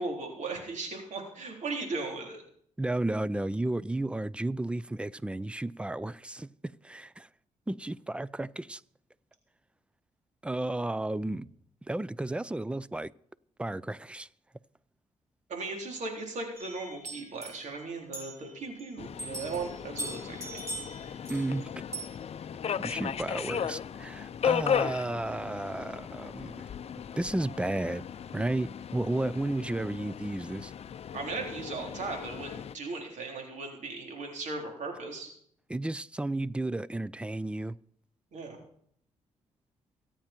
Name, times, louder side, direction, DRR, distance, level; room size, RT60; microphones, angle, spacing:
voice 1, 0.0-2.4 15.5-20.6 31.1-35.3 38.3-38.6, right 3 dB, 70° right, 3.8 m, -37 dB
voice 2, 2.8-7.3 7.7-8.8 10.4-11.5 11.8-13.1 13.6-14.3 21.3-21.7 22.8-26.7 27.2-28.0 28.3-30.7 35.7-37.8, right 2 dB, 10° right, 0.5 m, -33 dB
sound 1, 16.5-18.9 19.2-21.6 21.9-22.1, right 2 dB, 25° right, 6.0 m, -41 dB
Subway metro underground, 19.0-32.7, left 8 dB, 55° left, 0.6 m, -36 dB
24.0 x 8.8 x 4.5 m
cardioid pair, 90°, 13 cm